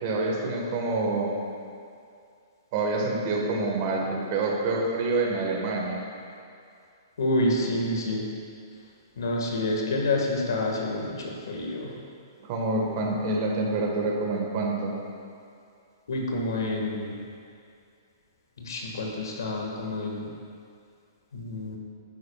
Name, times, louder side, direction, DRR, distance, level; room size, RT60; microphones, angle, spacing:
voice 1, 0.0-1.3 2.7-6.0 12.4-14.9, right 3 dB, 40° right, -1 dB, 1.5 m, -27 dB
voice 2, 7.2-8.3 9.2-11.9 16.1-17.2 18.6-20.3 21.3-21.8, left 1 dB, 80° left, 0 dB, 1.8 m, -28 dB
10.0 x 9.2 x 2.4 m, 2.4 s
hypercardioid pair, 150°, 2 cm